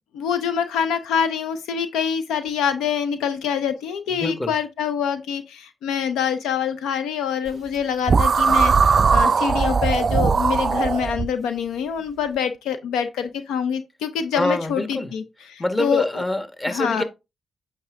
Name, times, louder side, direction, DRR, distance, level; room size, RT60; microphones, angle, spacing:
voice 1, 0.1-15.2 15.5-16.2 16.7-17.0, left 7 dB, 80° left, 0.5 m, -25 dB
voice 2, 4.1-4.5 14.3-15.1 15.6-17.0, left 1 dB, 25° left, 1.3 m, -25 dB
sound 1, 8.1-11.3, right 5 dB, 50° right, 0.3 m, -19 dB
8.6 x 3.5 x 3.5 m
hypercardioid pair, 40°, 0 cm